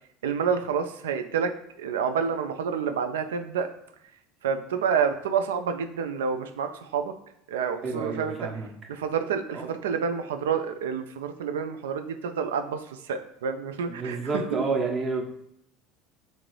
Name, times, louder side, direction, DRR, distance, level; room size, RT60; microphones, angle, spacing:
voice 1, 0.2-3.7 4.4-7.1 7.5-8.5 8.9-14.6, right 6 dB, 75° right, 8 dB, 0.3 m, -28 dB
voice 2, 7.8-8.7 9.5-9.7 13.9-15.2, right 4 dB, 35° right, 1 dB, 1.0 m, -29 dB
3.5 x 2.7 x 3.1 m, 0.74 s
figure-of-eight pair, 70°, 0 cm